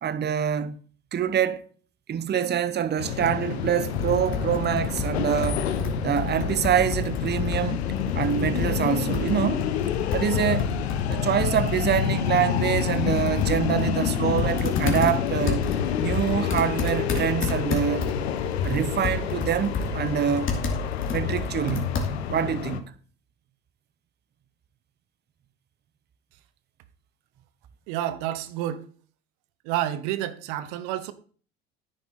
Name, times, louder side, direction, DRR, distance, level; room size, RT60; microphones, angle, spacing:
voice 1, 0.0-0.8 1.1-1.6 2.1-5.7 6.0-7.9 8.1-9.7 10.1-10.7 11.1-15.7 16.0-18.1 18.6-20.5 21.1-22.0 22.3-22.9, right 8 dB, 35° right, 0.9 m, -25 dB
sound 1, 3.0-22.8, left 10 dB, 85° left, 1.0 m, -28 dB
Computer keyboard, 3.9-22.4, left 3 dB, 40° left, 2.9 m, -31 dB
voice 2, 27.9-28.8 29.6-31.1, right 12 dB, 65° right, 0.9 m, -29 dB
10.5 x 9.1 x 4.1 m
hypercardioid pair, 70°, 31 cm